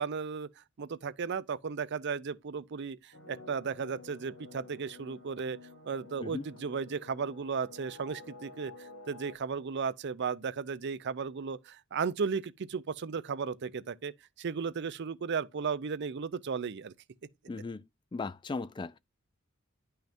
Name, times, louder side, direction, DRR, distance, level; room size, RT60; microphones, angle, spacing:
voice 1, 0.0-5.6 5.8-14.1 14.4-16.9, right 5 dB, 55° right, 0.5 m, -35 dB
sound 1, 3.1-9.4, left 3 dB, 60° left, 1.7 m, -51 dB
voice 2, 17.5-17.8 18.1-19.0, left 3 dB, 20° left, 0.3 m, -37 dB
10.5 x 5.7 x 2.6 m
head